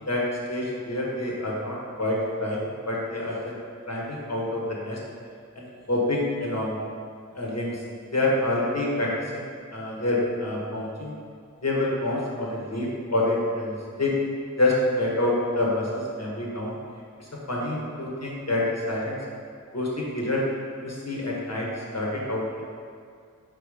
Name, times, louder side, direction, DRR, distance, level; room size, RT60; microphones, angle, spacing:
voice 1, 0.1-3.5 3.9-5.0 5.6-6.8 7.3-7.8 8.1-11.1 11.6-14.1 14.6-16.8 17.2-19.2 19.7-20.4 20.8-22.6, left 1 dB, 50° left, -3 dB, 1.3 m, -27 dB
5.4 x 4.2 x 4.9 m, 2.2 s
wide cardioid pair, 45°, 33 cm